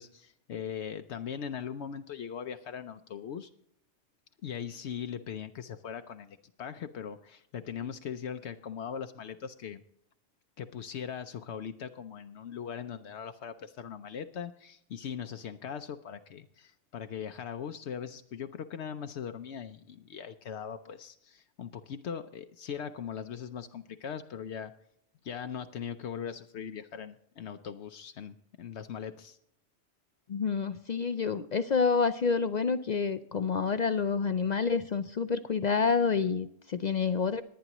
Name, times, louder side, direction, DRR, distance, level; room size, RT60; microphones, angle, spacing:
voice 1, 0.0-3.5 4.4-9.8 10.6-24.7 25.2-29.4, left 8 dB, 75° left, 8 dB, 0.9 m, -40 dB
voice 2, 30.3-37.4, left 5 dB, 55° left, 11 dB, 0.5 m, -28 dB
20.5 x 9.4 x 3.0 m, 0.70 s
omnidirectional pair, 1.2 m